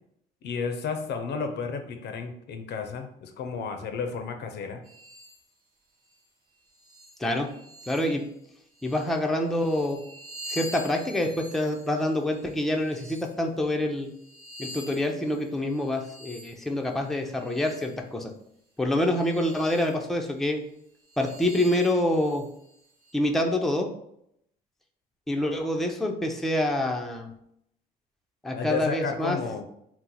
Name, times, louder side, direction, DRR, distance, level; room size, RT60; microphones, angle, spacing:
voice 1, 0.4-4.8 28.5-29.6, left 5 dB, 60° left, 6 dB, 0.5 m, -32 dB
sound 1, 4.8-5.4 6.0-6.2 6.7-8.3 8.7-13.3 13.9-18.0 18.9-20.0 20.4-20.5 21.0-23.1, equal, 50° right, 1.1 m, -46 dB
voice 2, 7.9-8.2 8.8-10.0 10.5-14.1 14.6-18.3 18.8-20.6 21.2-22.4 23.1-23.9 25.3-27.3 28.4-29.4, left 1 dB, ahead, 2 dB, 0.5 m, -26 dB
2.8 x 2.0 x 3.8 m, 0.74 s
supercardioid pair, 65°, 20 cm